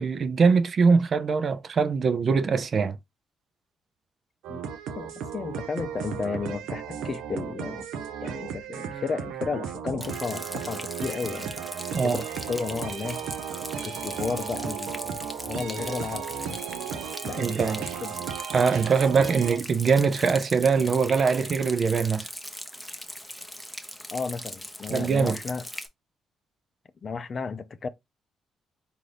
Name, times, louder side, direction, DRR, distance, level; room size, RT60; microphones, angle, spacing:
voice 1, 0.0-3.0 11.9-12.2 17.4-17.8 18.5-22.3 24.9-25.4, right 5 dB, 50° right, 0.4 m, -22 dB
sound 1, 4.4-19.6, right 8 dB, 90° right, 0.6 m, -35 dB
voice 2, 4.9-7.9 8.2-11.6 12.0-13.2 13.8-15.2 15.5-16.6 17.2-18.2 24.1-25.6 27.0-27.9, left 5 dB, 40° left, 0.4 m, -33 dB
Rain, 10.0-25.9, equal, ahead, 0.7 m, -40 dB
3.9 x 2.6 x 3.2 m
cardioid pair, 90°, 0 cm